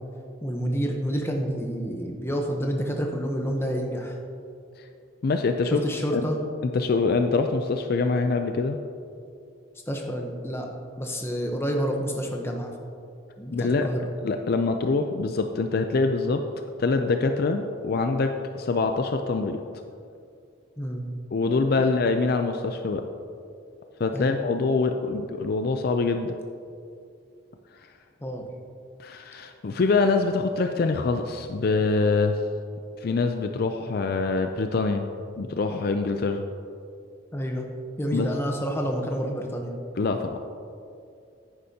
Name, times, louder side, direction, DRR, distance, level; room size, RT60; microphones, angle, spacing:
voice 1, 0.4-4.2 5.7-6.4 9.9-10.7 11.0-12.7 13.4-14.1 20.8-21.1 21.8-21.9 24.1-24.4 28.2-28.4 37.3-37.7 38.0-39.8, equal, 10° left, 2 dB, 0.8 m, -29 dB
voice 2, 5.2-5.8 6.1-6.2 6.7-8.8 13.5-13.9 14.2-16.4 16.8-19.6 21.3-23.1 24.0-26.3 29.0-32.4 33.0-35.0 35.4-36.4 38.1-38.3 40.0-40.4, left 3 dB, 50° left, 6 dB, 0.4 m, -24 dB
10.0 x 9.6 x 2.8 m, 2.4 s
head